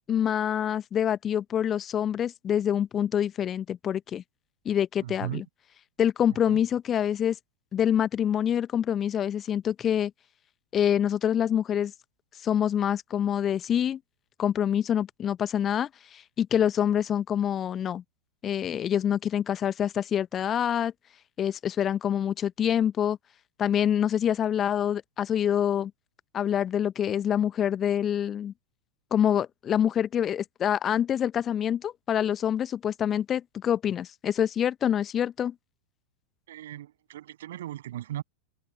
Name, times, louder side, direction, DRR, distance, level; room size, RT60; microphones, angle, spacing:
voice 1, 0.1-4.2 4.6-5.4 6.0-7.4 7.7-10.1 10.7-11.9 12.4-14.0 14.4-18.0 18.4-20.9 21.4-23.2 23.6-25.9 26.3-28.5 29.1-35.5, left 9 dB, 25° left, 0.9 m, -26 dB
voice 2, 5.0-5.4 6.5-6.6 36.5-38.2, right 13 dB, 60° right, 7.9 m, -37 dB
figure-of-eight pair, 90°, 0 cm